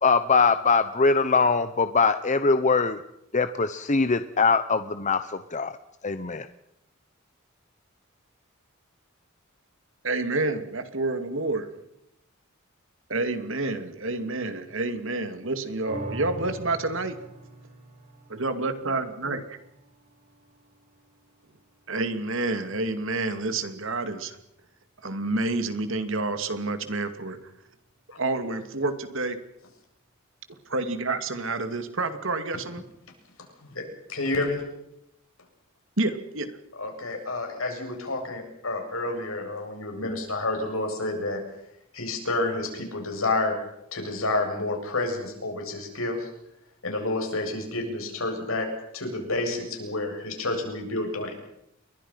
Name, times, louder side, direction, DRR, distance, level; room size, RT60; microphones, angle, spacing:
voice 1, 0.0-3.0 3.3-5.8 6.0-6.5, left 4 dB, 35° left, 11 dB, 0.9 m, -22 dB
voice 2, 10.0-11.7 13.1-17.2 18.3-19.4 21.9-24.4 25.0-27.4 28.1-29.4 30.7-32.8 36.0-36.5, right 2 dB, 65° right, 9 dB, 2.6 m, -28 dB
sound 1, 15.9-22.5 23.0-23.1, right 2 dB, 35° right, 6.8 m, -44 dB
voice 3, 33.6-34.6 36.7-41.4 41.9-43.6 43.9-46.3 46.8-48.7 48.9-51.3, left 2 dB, 80° left, 3 dB, 7.8 m, -29 dB
29.5 x 23.5 x 5.9 m, 0.81 s
head